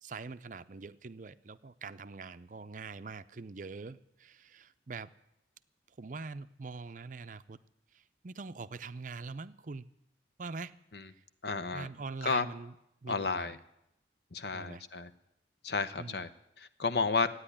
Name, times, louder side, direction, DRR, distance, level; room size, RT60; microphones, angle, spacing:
voice 1, 0.0-5.1 6.0-7.6 7.9-9.9 10.4-10.8 11.7-12.7 13.0-13.6 14.5-14.8 16.0-16.2, right 4 dB, 45° right, 12 dB, 0.5 m, -43 dB
voice 2, 11.4-11.9 12.2-12.5 13.1-13.6 14.3-15.1 15.6-16.3 16.6-17.3, left 4 dB, 60° left, 10 dB, 0.9 m, -32 dB
14.5 x 9.7 x 10.0 m, 0.81 s
head